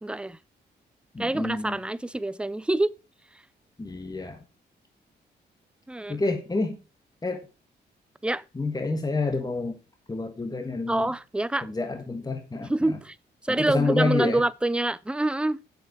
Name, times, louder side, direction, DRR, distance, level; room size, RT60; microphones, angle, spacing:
voice 1, 0.0-0.4 1.2-2.9 5.9-6.2 8.2-8.4 10.9-11.7 12.7-13.2 13.4-15.6, right 2 dB, 5° right, 0.4 m, -26 dB
voice 2, 1.1-1.8 3.8-4.4 6.1-6.8 7.2-7.5 8.5-9.8 10.1-11.1 11.6-13.0 13.6-14.4, left 3 dB, 20° left, 1.5 m, -28 dB
7.9 x 6.8 x 4.7 m
cardioid pair, 65°, 18 cm